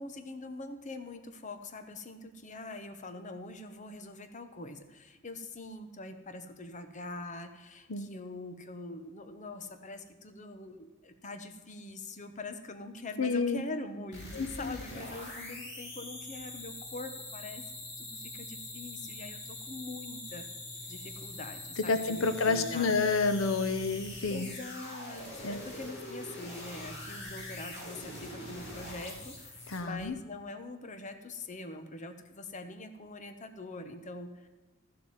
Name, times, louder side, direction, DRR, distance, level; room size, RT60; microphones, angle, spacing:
voice 1, 0.0-17.6 18.0-20.5 20.9-23.0 24.3-34.5, left 2 dB, 40° left, 8 dB, 1.0 m, -43 dB
voice 2, 13.2-13.6 14.3-14.8 21.8-24.5 25.4-25.6 29.7-30.1, left 4 dB, 85° left, 10 dB, 0.8 m, -29 dB
sound 1, 14.1-30.0, left 1 dB, 60° left, 3.9 m, -43 dB
12.5 x 7.6 x 7.2 m, 1.2 s
head